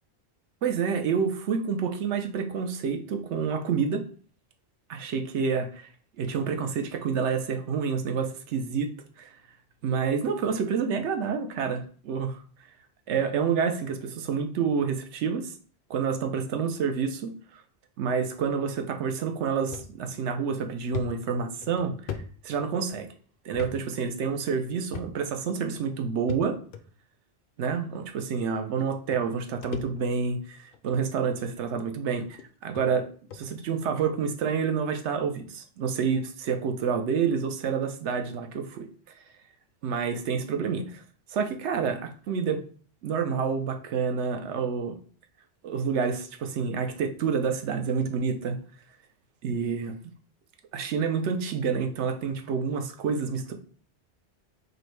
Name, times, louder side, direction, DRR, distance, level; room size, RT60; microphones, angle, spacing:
voice 1, 0.6-4.1 4.9-5.9 6.2-9.3 9.8-12.4 13.1-15.5 15.9-17.6 18.0-21.9 22.4-23.1 23.4-26.6 27.6-38.9 39.8-41.0 41.3-42.6 43.0-44.9 45.6-48.6 49.4-50.0 50.7-53.5, right 6 dB, 85° right, 6 dB, 0.9 m, -28 dB
sound 1, 19.7-19.9 20.3-20.4 20.9-23.0 23.5-23.7 24.0-24.2 24.9-25.4 26.3-26.8 27.7-27.8 28.8-28.9 29.1-30.3 30.7-31.0 31.8-31.9 32.4-32.5 32.7-32.9 33.3-33.5, left 7 dB, 60° left, 0.6 m, -39 dB
5.1 x 2.1 x 4.5 m, 0.43 s
omnidirectional pair, 1.1 m